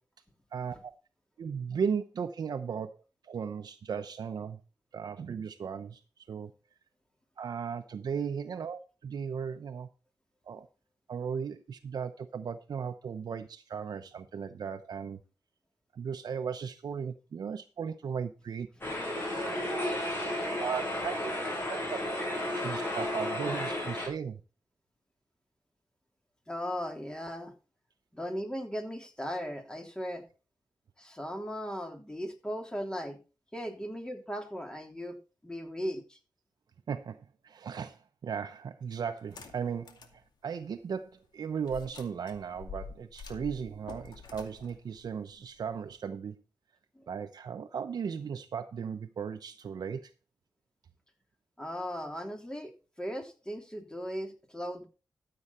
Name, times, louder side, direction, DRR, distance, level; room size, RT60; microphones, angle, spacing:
voice 1, 0.5-0.9 1.4-3.0 3.2-4.6 4.9-6.5 7.4-9.9 10.5-10.7 11.1-15.2 15.9-18.7 19.1-19.2 20.6-21.3 21.7-22.0 22.5-24.4 36.9-40.0 40.4-46.4 47.1-50.1, right 6 dB, 70° right, 0.8 m, -36 dB
sound 1, 18.8-24.1, left 1 dB, 30° left, 6.8 m, -33 dB
voice 2, 26.5-27.5 28.1-30.2 31.0-33.2 33.5-35.1 35.4-36.0 46.9-47.0 51.6-52.7 53.0-54.9, equal, 10° left, 3.3 m, -37 dB
sound 2, 39.2-40.2 40.6-40.7 41.6-45.9, left 5 dB, 85° left, 2.3 m, -47 dB
13.5 x 7.8 x 4.3 m
cardioid pair, 85°, 7 cm